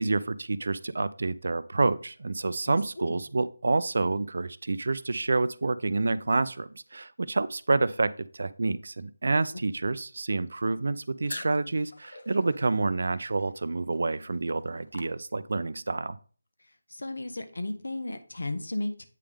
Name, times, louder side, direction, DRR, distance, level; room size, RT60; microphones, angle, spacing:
voice 1, 0.0-16.2, right 3 dB, 50° right, 15 dB, 0.4 m, -28 dB
voice 2, 2.7-3.2 16.9-19.1, left 2 dB, 75° left, 8 dB, 1.0 m, -35 dB
sound 1, 11.3-15.7, left 2 dB, 50° left, 0.7 m, -46 dB
8.4 x 3.5 x 3.5 m, 0.42 s
figure-of-eight pair, 175°, 0 cm